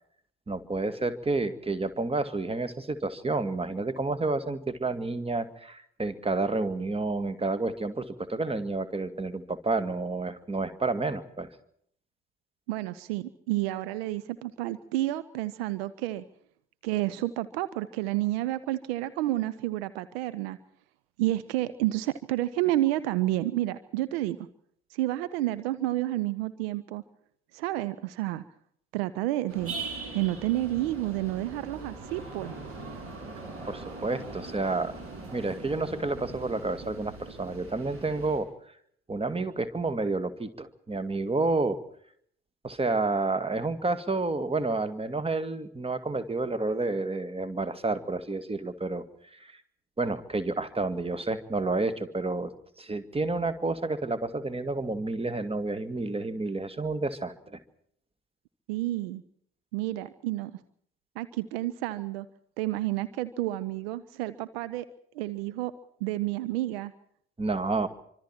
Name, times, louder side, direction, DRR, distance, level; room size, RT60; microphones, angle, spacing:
voice 1, 0.5-11.5 33.6-35.0 35.3-38.5 39.1-41.8 42.6-49.0 49.3-49.6 50.0-52.5 52.8-57.6 67.4-67.9, right 3 dB, 15° right, 12 dB, 2.1 m, -30 dB
voice 2, 12.7-16.2 16.8-20.6 21.2-24.4 24.9-27.0 27.5-28.4 28.9-29.8 30.1-32.5 58.7-59.2 59.7-60.6 61.2-62.3 62.6-64.9 65.1-65.7 66.0-66.9, right 15 dB, 65° right, 15 dB, 0.9 m, -30 dB
sound 1, 29.5-38.4, right 3 dB, 45° right, 7.1 m, -41 dB
25.5 x 25.5 x 4.5 m, 0.64 s
figure-of-eight pair, 50°, 33 cm